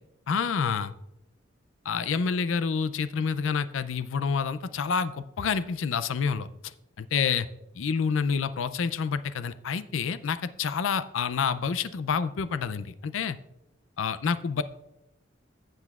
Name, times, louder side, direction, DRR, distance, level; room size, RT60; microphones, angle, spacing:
voice 1, 0.3-0.9 1.9-7.5 7.8-13.4 14.0-14.6, left 6 dB, 80° left, 14 dB, 0.4 m, -28 dB
15.0 x 7.8 x 2.4 m, 0.89 s
head